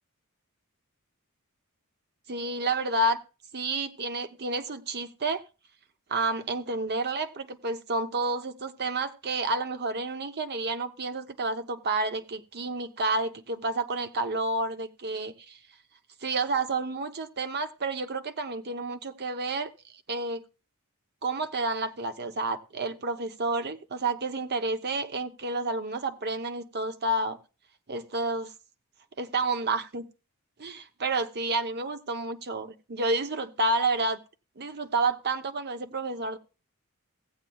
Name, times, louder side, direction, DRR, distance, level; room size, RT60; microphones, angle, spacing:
voice 1, 2.3-3.2 3.5-5.4 6.1-15.6 16.2-19.7 20.1-20.4 21.2-27.4 27.9-28.5 29.2-30.0 30.6-34.2 34.6-36.4, right 2 dB, 50° right, 0.9 m, -30 dB
16.5 x 8.1 x 2.3 m
head